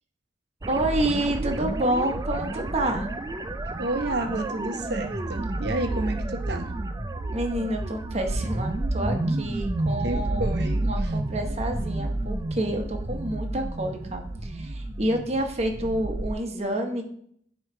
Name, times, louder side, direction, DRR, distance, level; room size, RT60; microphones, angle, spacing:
sound 1, 0.6-16.3, right 2 dB, 20° right, 0.3 m, -30 dB
voice 1, 0.7-3.1 7.3-10.6 10.9-17.0, right 1 dB, 35° right, 4 dB, 1.0 m, -28 dB
voice 2, 3.8-6.7 10.0-11.1, right 2 dB, 60° right, 5 dB, 0.9 m, -30 dB
9.3 x 3.1 x 4.4 m, 0.65 s
head